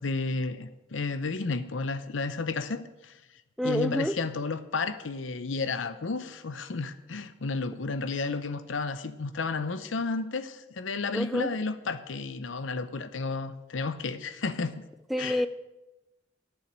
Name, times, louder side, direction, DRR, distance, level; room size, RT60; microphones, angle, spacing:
voice 1, 0.0-3.1 3.6-14.7 15.2-15.5, left 4 dB, 85° left, 0.7 m, -32 dB
voice 2, 3.6-4.1 11.1-11.5 15.1-15.5, equal, ahead, 0.4 m, -27 dB
8.8 x 7.3 x 8.7 m
head